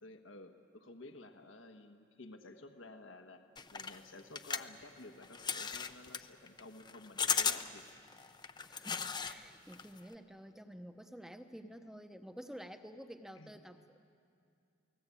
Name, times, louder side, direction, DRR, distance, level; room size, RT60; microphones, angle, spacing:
voice 1, 0.0-3.4 3.7-7.8 13.4-13.5, left 2 dB, 75° left, 6 dB, 1.4 m, -53 dB
sound 1, 3.6-9.4 9.7-10.1, left 6 dB, 20° left, 0.6 m, -37 dB
voice 2, 8.7-14.1, equal, 5° right, 7 dB, 0.9 m, -50 dB
29.0 x 19.0 x 8.5 m, 2.5 s
head